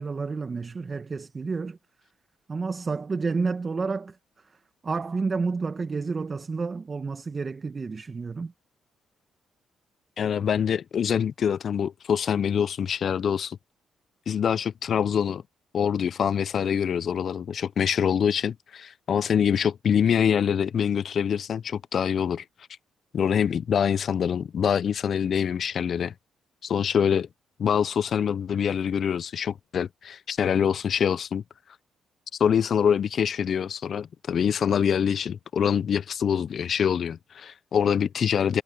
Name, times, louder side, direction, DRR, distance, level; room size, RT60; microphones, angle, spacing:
voice 1, 0.0-1.8 2.5-4.2 4.5-4.6 4.8-8.5, right 4 dB, 35° right, 1.3 m, -30 dB
voice 2, 10.2-13.6 14.3-15.4 15.7-22.4 23.1-26.1 26.6-27.3 27.6-31.4 32.4-38.6, left 8 dB, 55° left, 0.5 m, -25 dB
cardioid pair, 90°, 0 cm